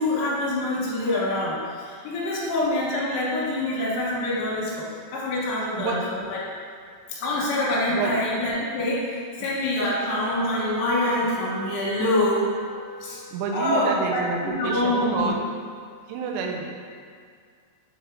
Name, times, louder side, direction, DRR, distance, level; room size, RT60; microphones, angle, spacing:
voice 1, 0.0-4.9 5.1-6.4 7.1-12.4 13.0-13.2 13.5-15.3, left 1 dB, 70° left, -6 dB, 3.1 m, -25 dB
sound 1, 9.8-13.8, right 1 dB, 60° right, 2.3 m, -38 dB
voice 2, 13.3-15.4 16.1-16.7, right 5 dB, 80° right, 1 dB, 2.9 m, -28 dB
7.4 x 3.5 x 3.6 m, 2.1 s
omnidirectional pair, 5.7 m